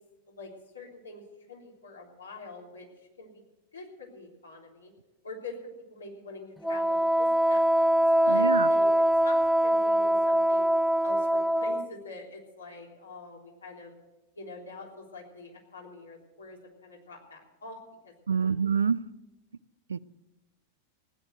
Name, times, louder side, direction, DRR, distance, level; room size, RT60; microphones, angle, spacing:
voice 1, 0.3-1.2 1.5-2.9 3.2-3.3 3.7-4.9 5.2-5.6 5.9-10.7 11.0-13.9 14.4-17.8 18.0-18.5, left 3 dB, 75° left, -1 dB, 3.6 m, -45 dB
Wind instrument woodwind instrument, 6.6-11.9, equal, 5° left, 0.6 m, -23 dB
voice 2, 8.3-8.7 18.3-19.0 19.9-20.0, right 6 dB, 70° right, 19 dB, 0.4 m, -26 dB
16.5 x 9.9 x 7.9 m, 1.0 s
figure-of-eight pair, 90°, 0 cm